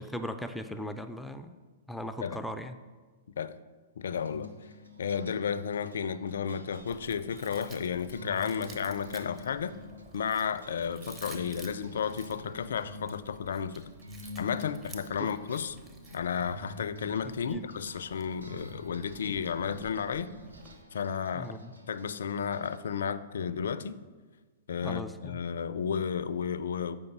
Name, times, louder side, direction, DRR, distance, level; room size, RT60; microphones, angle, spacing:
voice 1, 0.0-1.6 1.9-2.7 15.2-15.3 17.2-17.6 21.3-21.7 24.8-25.4, equal, 5° left, 8 dB, 0.4 m, -38 dB
voice 2, 4.0-4.5 5.0-9.7 10.1-13.8 14.4-15.8 16.1-20.3 20.9-21.5 21.9-24.0 24.7-27.0, left 7 dB, 70° left, 15 dB, 0.4 m, -32 dB
sound 1, 4.2-22.8, left 2 dB, 90° right, 0.9 m, -48 dB
Chewing mastication, 6.8-20.8, right 2 dB, 20° right, 1.0 m, -53 dB
7.9 x 5.3 x 5.3 m, 1.4 s
hypercardioid pair, 110°, 0 cm